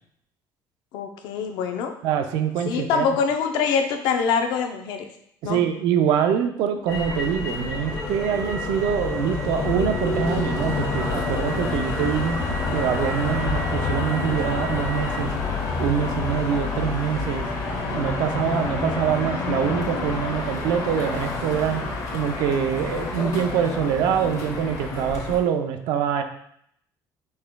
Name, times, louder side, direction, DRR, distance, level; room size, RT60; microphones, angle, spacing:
voice 1, 0.9-1.9 2.7-5.0 5.4-5.6, left 6 dB, 85° left, 5 dB, 0.6 m, -24 dB
voice 2, 2.0-3.1 5.4-12.4 12.7-15.3 15.8-17.5 17.9-21.8 22.1-26.2, right 8 dB, 75° right, 7 dB, 0.5 m, -24 dB
Motor vehicle (road), 6.9-25.4, left 3 dB, 55° left, 1.1 m, -28 dB
5.4 x 3.5 x 2.2 m, 0.71 s
cardioid pair, 170°, 7 cm